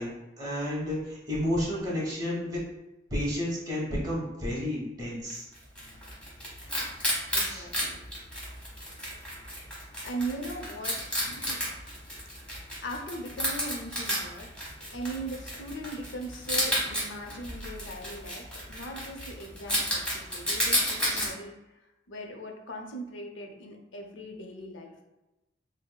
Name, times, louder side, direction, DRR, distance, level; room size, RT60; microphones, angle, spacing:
voice 1, 0.0-2.6 3.1-5.5 7.5-7.7 21.1-21.3, left 1 dB, 20° right, -6 dB, 1.1 m, -31 dB
Wild animals, 5.3-21.3, equal, 5° left, 1.1 m, -32 dB
voice 2, 7.3-8.0 10.0-11.0 11.3-11.6 12.4-14.5 14.9-21.5 22.1-24.9, right 1 dB, 85° left, 2 dB, 0.6 m, -39 dB
5.2 x 2.0 x 2.2 m, 0.98 s
head